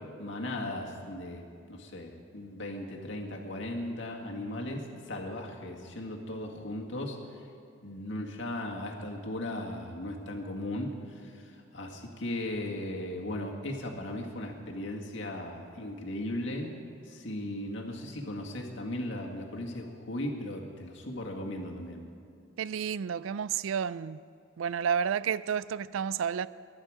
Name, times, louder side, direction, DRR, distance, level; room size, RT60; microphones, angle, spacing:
voice 1, 0.2-1.4 1.7-7.2 7.8-10.9 11.2-11.4 11.7-16.7 17.1-22.0, left 1 dB, 65° left, 1.9 m, -37 dB
voice 2, 22.6-24.2 24.6-26.5, right 7 dB, 75° right, 0.3 m, -31 dB
22.5 x 11.0 x 4.9 m
head